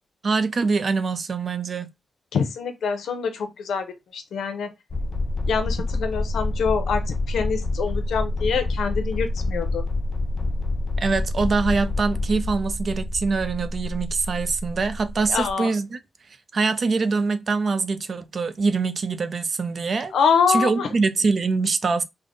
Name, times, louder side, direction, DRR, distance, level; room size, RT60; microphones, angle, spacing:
voice 1, 0.2-1.9 11.0-16.0 16.5-20.1 20.5-22.0, right 4 dB, 40° right, 0.4 m, -24 dB
voice 2, 2.3-3.9 4.1-4.7 5.5-9.8 15.3-15.7 20.1-20.9, left 6 dB, 85° left, 0.7 m, -25 dB
sound 1, 4.9-15.5, left 2 dB, 35° left, 0.4 m, -27 dB
3.5 x 2.1 x 3.7 m
wide cardioid pair, 160°, 0 cm